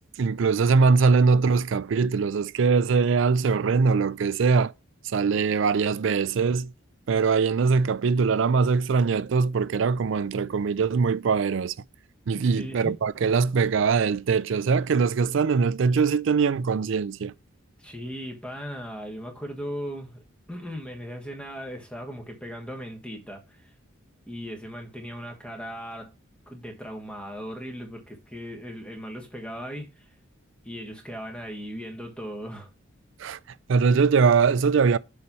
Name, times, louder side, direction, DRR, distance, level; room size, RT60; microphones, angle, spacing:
voice 1, 0.2-4.7 5.0-6.7 7.1-11.7 12.3-17.3 33.2-33.4 33.7-35.0, right 5 dB, 60° right, 0.4 m, -22 dB
voice 2, 12.4-13.0 17.8-23.7 24.3-26.1 26.5-30.1 30.6-32.7, equal, 5° left, 1.3 m, -38 dB
6.8 x 3.1 x 5.5 m
head